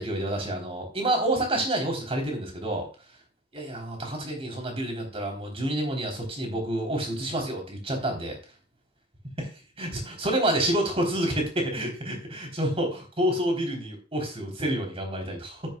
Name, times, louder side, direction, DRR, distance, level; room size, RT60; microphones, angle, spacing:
voice 1, 0.0-2.9 3.5-8.4 9.8-15.6, right 1 dB, 35° right, 2 dB, 3.6 m, -28 dB
12.0 x 10.5 x 2.3 m, 0.32 s
head